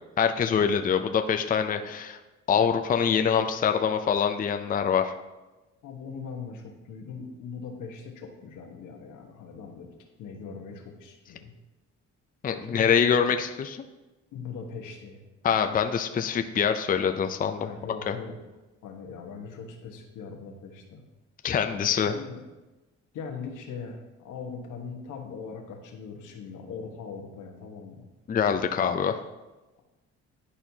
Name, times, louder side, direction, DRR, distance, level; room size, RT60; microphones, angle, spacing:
voice 1, 0.2-2.2 2.5-5.1 12.4-13.8 15.4-17.7 18.1-18.2 21.4-22.1 28.3-29.2, left 7 dB, 30° left, 6 dB, 0.4 m, -24 dB
voice 2, 5.8-9.9 10.2-11.5 12.6-13.1 14.3-15.2 17.6-18.3 18.8-21.0 21.7-22.4 23.1-28.1, left 5 dB, 85° left, 1 dB, 1.2 m, -40 dB
11.0 x 4.3 x 2.8 m, 1.1 s
cardioid pair, 90°, 30 cm